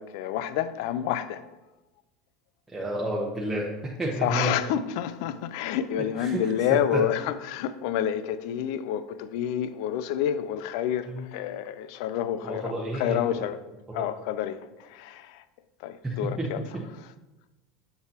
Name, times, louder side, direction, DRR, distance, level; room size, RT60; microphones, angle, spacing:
voice 1, 0.0-1.5 4.2-13.6 13.9-15.4 15.8-16.6, left 10 dB, 65° left, 0.4 m, -29 dB
voice 2, 2.7-4.5 6.2-6.4 6.7-7.0 11.1-11.2 12.4-13.5 14.0-14.1 16.0-16.8, right 1 dB, 10° right, 1.2 m, -31 dB
6.8 x 6.4 x 2.9 m
hypercardioid pair, 85°, 3 cm